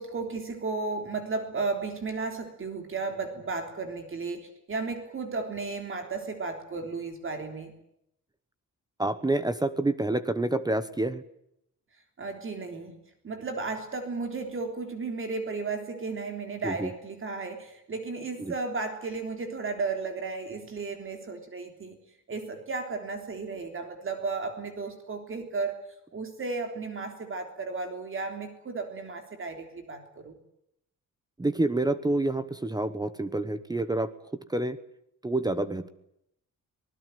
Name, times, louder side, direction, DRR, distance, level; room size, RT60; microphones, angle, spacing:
voice 1, 0.0-7.7 12.2-12.9 13.2-22.0 22.3-25.8 26.1-30.4, right 4 dB, 40° right, 5 dB, 3.5 m, -34 dB
voice 2, 9.0-11.2 16.6-16.9 18.4-18.5 31.4-34.1 34.5-34.8 35.2-35.9, right 2 dB, 10° right, 12 dB, 1.1 m, -28 dB
25.5 x 19.5 x 9.2 m, 0.78 s
wide cardioid pair, 175°, 32 cm